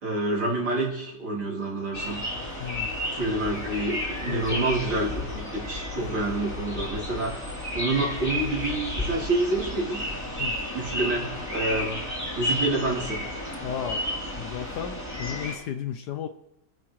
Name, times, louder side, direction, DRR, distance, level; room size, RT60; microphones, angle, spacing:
voice 1, 0.0-2.3 3.1-7.4 7.7-10.1 10.7-12.0 12.4-13.2, right 2 dB, 80° right, -5 dB, 4.0 m, -28 dB
sound 1, 1.9-15.6, left 1 dB, 10° left, 3.1 m, -32 dB
voice 2, 2.6-2.9 4.2-4.7 10.4-10.5 13.6-14.0 14.4-16.3, left 9 dB, 70° left, 8 dB, 1.0 m, -33 dB
25.0 x 9.1 x 3.1 m, 0.86 s
omnidirectional pair, 2.2 m